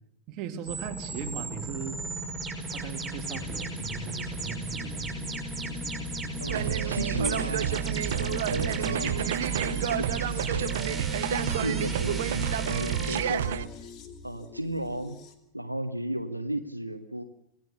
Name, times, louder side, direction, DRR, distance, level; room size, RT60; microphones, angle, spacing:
voice 1, 0.3-2.0 2.7-5.1, right 8 dB, 40° right, 5 dB, 2.4 m, -39 dB
sound 1, 0.7-13.2, right 2 dB, 5° right, 6.1 m, -35 dB
sound 2, 3.3-15.3, left 4 dB, 35° left, 2.7 m, -42 dB
voice 2, 6.4-7.8 8.1-10.8 11.3-13.7 14.2-15.2 15.5-17.2, right 1 dB, 85° right, 7 dB, 1.2 m, -35 dB
sound 3, 6.5-13.7, right 12 dB, 55° right, 0.9 m, -29 dB
26.0 x 17.5 x 7.0 m, 0.80 s
figure-of-eight pair, 90°, 0 cm